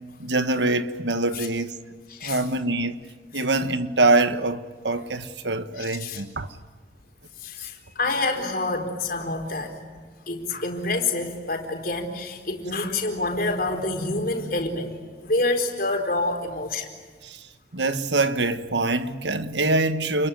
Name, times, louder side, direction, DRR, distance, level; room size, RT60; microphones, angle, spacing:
voice 1, 0.2-1.8 2.2-3.1 3.3-6.5 7.6-7.7 17.2-17.4 17.7-20.3, right 2 dB, 80° right, 1.5 m, -24 dB
voice 2, 2.1-2.4 3.3-3.4 5.8-6.2 7.4-9.8 10.3-16.9, left 2 dB, 55° left, 4.2 m, -27 dB
29.0 x 22.0 x 9.3 m
head